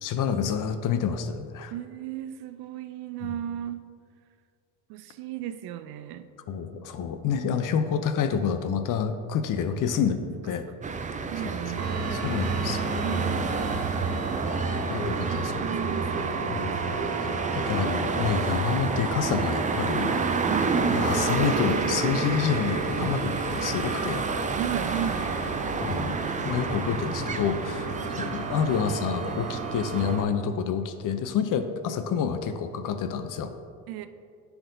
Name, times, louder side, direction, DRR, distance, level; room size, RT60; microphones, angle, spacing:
voice 1, 0.0-1.7 3.2-3.3 6.5-10.7 12.1-13.0 14.9-15.5 16.5-16.8 17.2-20.1 20.9-24.3 25.8-26.2 26.4-33.5, left 7 dB, 50° left, 9 dB, 0.6 m, -28 dB
voice 2, 1.7-3.9 4.9-6.3 11.3-12.0 13.0-13.8 15.3-16.3 20.5-20.9 23.0-23.1 24.6-25.3 33.9-34.1, right 11 dB, 65° right, 10 dB, 0.5 m, -35 dB
sound 1, 10.8-30.3, right 4 dB, 20° right, 0.5 m, -30 dB
sound 2, 11.8-30.2, right 3 dB, 40° right, 0.9 m, -34 dB
10.0 x 4.7 x 2.7 m, 2.2 s
supercardioid pair, 70°, 41 cm